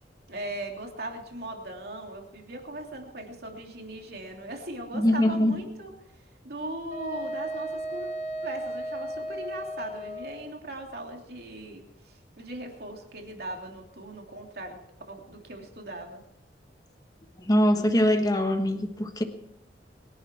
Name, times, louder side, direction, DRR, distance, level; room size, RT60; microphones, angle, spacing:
voice 1, 0.3-5.9 6.2-8.1 8.4-14.8 15.1-16.2, right 1 dB, 60° right, 2 dB, 3.1 m, -39 dB
voice 2, 4.9-5.6 17.5-19.2, left 1 dB, 20° left, 6 dB, 1.3 m, -23 dB
Wind instrument woodwind instrument, 6.9-10.5, right 1 dB, 40° left, 3.7 m, -35 dB
22.5 x 11.0 x 4.6 m, 0.83 s
head